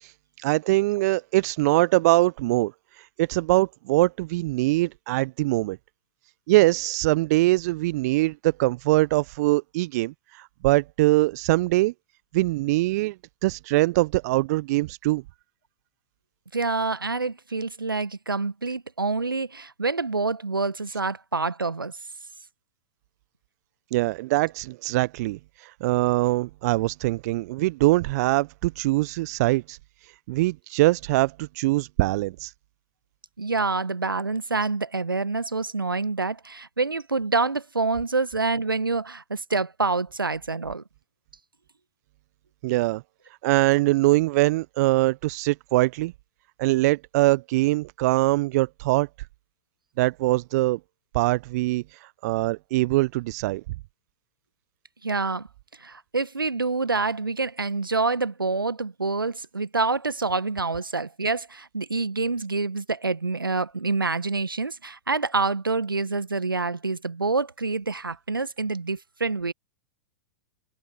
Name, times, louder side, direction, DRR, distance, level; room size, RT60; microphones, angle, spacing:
voice 1, 0.4-2.7 3.2-5.8 6.5-11.9 12.3-13.2 13.4-15.2 23.9-29.8 30.3-32.5 42.6-43.0 43.4-46.1 46.6-49.1 50.0-50.8 51.1-51.8 52.2-53.6, right 19 dB, 50° right, 0.5 m, -23 dB
voice 2, 16.5-22.0 33.4-40.8 55.0-55.5 55.8-69.5, right 3 dB, 90° right, 1.1 m, -27 dB
figure-of-eight pair, 100°, 11 cm